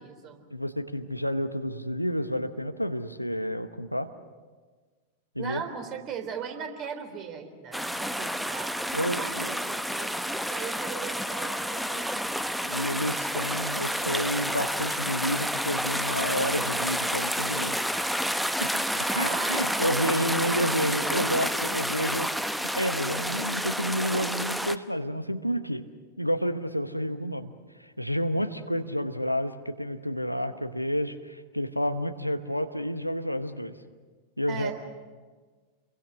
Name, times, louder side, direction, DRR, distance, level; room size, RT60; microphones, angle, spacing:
voice 1, 0.0-0.4 5.4-12.6 19.1-20.1 20.5-21.9 34.5-34.7, right 6 dB, 35° right, 5 dB, 3.7 m, -39 dB
voice 2, 0.5-4.1 5.3-5.6 8.9-9.6 12.6-18.2 18.6-22.3 22.6-25.8 26.2-27.5 27.8-33.8 34.4-34.7, equal, 90° left, 9 dB, 1.1 m, -30 dB
sound 1, 7.7-24.8, equal, ahead, 0.9 m, -30 dB
29.0 x 22.5 x 6.4 m, 1.4 s
figure-of-eight pair, 90°, 0 cm